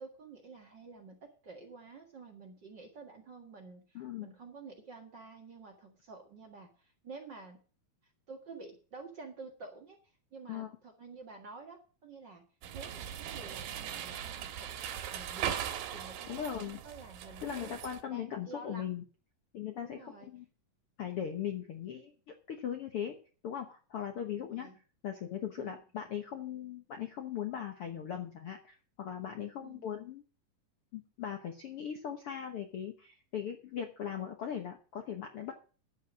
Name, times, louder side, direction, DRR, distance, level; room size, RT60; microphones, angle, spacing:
voice 1, 0.0-7.6 8.3-12.4 12.7-17.7 18.1-18.9 19.8-20.3 24.5-24.8 25.6-25.8 29.6-29.9, right 3 dB, 40° right, 2 dB, 1.9 m, -50 dB
voice 2, 3.9-4.3 10.5-10.7 16.3-16.8 17.4-19.0 19.5-20.4 21.0-22.1 22.5-23.1 23.4-24.7 25.0-30.2 30.9-35.5, left 9 dB, 65° left, 5 dB, 1.5 m, -39 dB
sound 1, 12.6-18.0, right 10 dB, 90° right, 2.8 m, -39 dB
11.0 x 8.2 x 6.3 m, 0.37 s
omnidirectional pair, 3.9 m